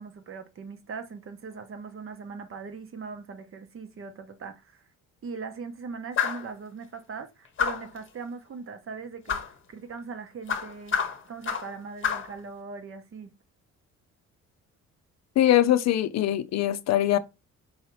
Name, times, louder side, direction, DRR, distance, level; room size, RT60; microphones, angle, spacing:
voice 1, 0.0-4.8 5.2-9.4 9.7-13.3, right 5 dB, 45° right, 0.8 m, -40 dB
sound 1, 6.2-6.5 7.6-8.0 9.3-9.5 10.5-11.7 12.0-12.3, left 7 dB, 40° left, 0.8 m, -28 dB
voice 2, 15.4-17.2, left 12 dB, 60° left, 0.5 m, -22 dB
4.8 x 2.8 x 3.1 m
cardioid pair, 90°, 30 cm